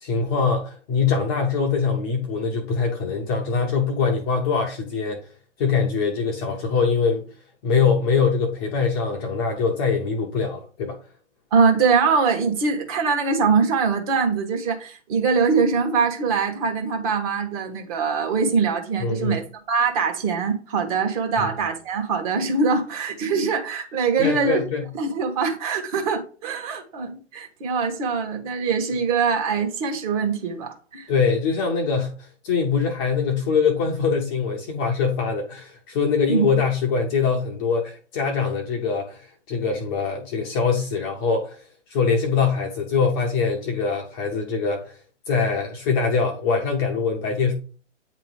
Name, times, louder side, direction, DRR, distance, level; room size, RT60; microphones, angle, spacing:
voice 1, 0.0-5.3 5.6-7.3 7.6-11.0 19.0-19.4 21.4-21.5 24.2-24.9 31.1-41.6 41.9-45.0 45.3-47.5, left 5 dB, 20° left, 0.6 m, -23 dB
voice 2, 11.5-19.4 19.7-24.6 25.0-31.1 36.3-36.5, right 5 dB, 30° right, 1.3 m, -23 dB
8.8 x 3.0 x 4.7 m
figure-of-eight pair, 130°, 36 cm